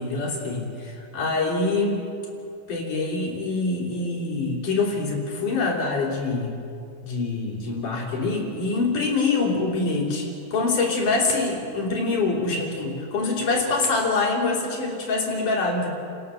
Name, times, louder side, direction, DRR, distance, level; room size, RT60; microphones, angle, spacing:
voice 1, 0.0-2.0 2.7-6.6 7.0-15.9, left 3 dB, 60° left, -2 dB, 4.7 m, -25 dB
30.0 x 17.0 x 7.0 m, 2.6 s
omnidirectional pair, 4.2 m